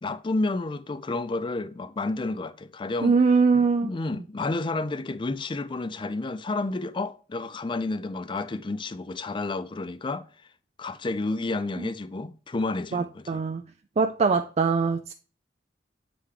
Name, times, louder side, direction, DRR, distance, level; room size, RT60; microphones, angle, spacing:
voice 1, 0.0-3.2 3.5-10.3 10.8-13.4, left 2 dB, 25° left, 0.4 m, -30 dB
voice 2, 3.0-3.9 12.9-13.6 14.0-15.1, right 4 dB, 35° right, 0.4 m, -22 dB
8.4 x 3.8 x 3.2 m
head